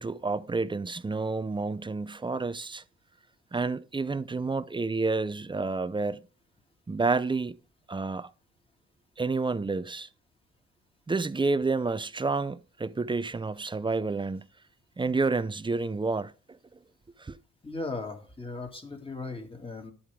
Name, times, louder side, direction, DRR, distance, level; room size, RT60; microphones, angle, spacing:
voice 1, 0.0-2.8 3.5-6.2 6.9-7.6 7.9-8.3 9.2-10.1 11.1-14.5 15.0-16.3 17.2-17.4, right 3 dB, 15° right, 0.5 m, -29 dB
voice 2, 17.6-19.9, left 3 dB, 20° left, 2.6 m, -37 dB
11.0 x 8.3 x 3.7 m
cardioid pair, 90°, 30 cm